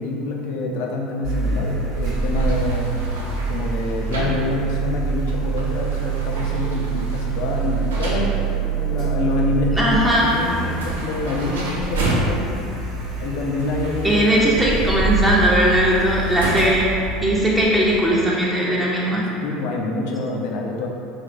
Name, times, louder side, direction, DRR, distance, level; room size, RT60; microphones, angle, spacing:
voice 1, 0.0-2.9 3.5-12.6 13.2-14.3 19.4-20.9, left 2 dB, 65° left, 0 dB, 0.4 m, -26 dB
Car, 1.2-18.1, right 4 dB, 50° right, 0.7 m, -26 dB
sound 1, 1.9-17.0, right 1 dB, 85° right, 0.5 m, -33 dB
voice 2, 9.7-10.3 14.0-16.9 17.2-19.2, right 1 dB, 10° right, -5 dB, 0.5 m, -18 dB
3.3 x 2.8 x 2.5 m, 2.5 s
hypercardioid pair, 80°, 0 cm